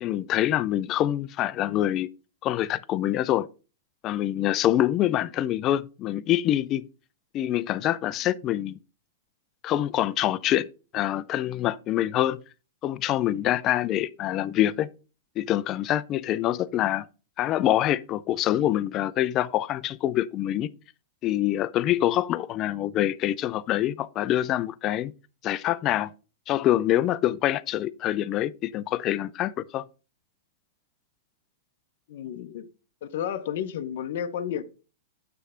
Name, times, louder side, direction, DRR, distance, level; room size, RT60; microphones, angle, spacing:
voice 1, 0.0-2.1 2.4-3.5 4.0-6.8 7.3-8.8 9.6-10.7 10.9-12.4 12.8-14.9 15.4-17.1 17.4-20.7 21.2-25.1 25.4-26.1 26.5-29.8, left 13 dB, 30° left, 0.4 m, -25 dB
voice 2, 32.1-32.7 33.0-34.6, left 9 dB, 60° left, 0.8 m, -32 dB
9.2 x 3.3 x 5.0 m
supercardioid pair, 150°, 0 cm